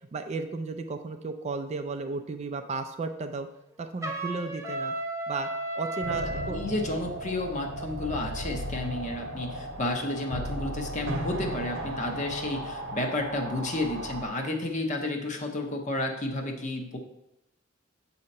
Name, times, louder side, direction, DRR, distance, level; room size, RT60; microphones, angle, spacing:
voice 1, 0.1-3.5 3.8-4.9 5.3-5.5 5.8-6.6, right 3 dB, 30° right, 7 dB, 0.3 m, -34 dB
Trumpet, 4.0-6.6, right 2 dB, 15° right, 0.7 m, -33 dB
sound 1, 6.0-14.2, right 1 dB, 65° right, 0.8 m, -36 dB
voice 2, 6.5-17.0, left 2 dB, 35° left, 3 dB, 0.8 m, -31 dB
7.4 x 2.8 x 5.3 m, 0.86 s
head